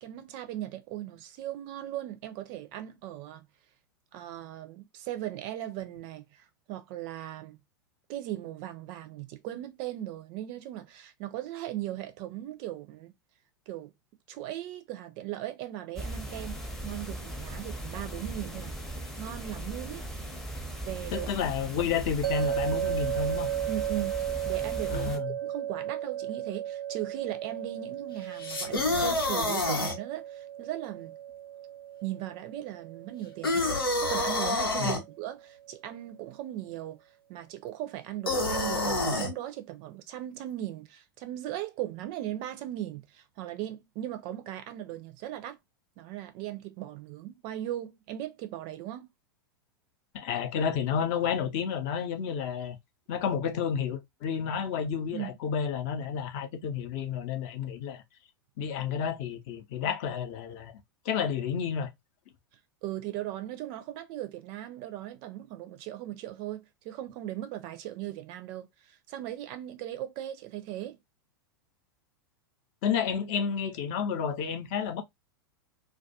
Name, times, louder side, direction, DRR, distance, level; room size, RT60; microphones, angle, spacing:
voice 1, 0.0-3.4 4.1-7.6 8.1-13.1 13.7-13.9 14.3-18.8 19.2-20.1 20.8-21.5 23.7-24.2 24.5-31.2 32.0-33.7 34.0-37.0 37.3-45.6 46.0-49.1 55.1-55.3 62.8-71.0, right 13 dB, 40° right, 0.4 m, -38 dB
sound 1, 16.0-25.2, right 1 dB, 5° left, 0.6 m, -38 dB
voice 2, 21.1-23.5 24.9-25.3 34.8-35.0 50.1-52.8 53.1-58.0 58.6-60.7 61.0-61.9 72.8-75.0, left 7 dB, 45° left, 0.6 m, -31 dB
sound 2, 22.2-35.4, right 11 dB, 90° right, 0.5 m, -35 dB
sound 3, 28.4-30.0 33.4-35.0 38.3-39.3, left 2 dB, 85° left, 0.8 m, -27 dB
2.3 x 2.2 x 2.6 m
figure-of-eight pair, 95°, 12 cm